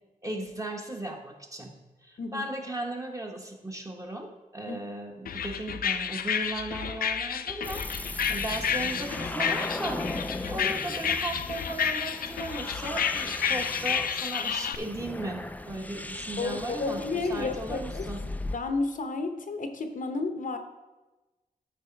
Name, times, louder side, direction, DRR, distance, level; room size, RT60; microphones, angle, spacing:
voice 1, 0.2-1.7 2.0-10.0 10.5-18.2, right 2 dB, 20° right, 1 dB, 1.2 m, -36 dB
sound 1, 5.3-14.8, left 7 dB, 80° left, 0.4 m, -30 dB
sound 2, 7.6-18.6, left 2 dB, 10° left, 0.4 m, -37 dB
voice 2, 16.4-18.1 18.5-20.6, left 3 dB, 65° left, 7 dB, 0.9 m, -31 dB
12.5 x 4.9 x 4.6 m, 1.1 s
wide cardioid pair, 115°, 15 cm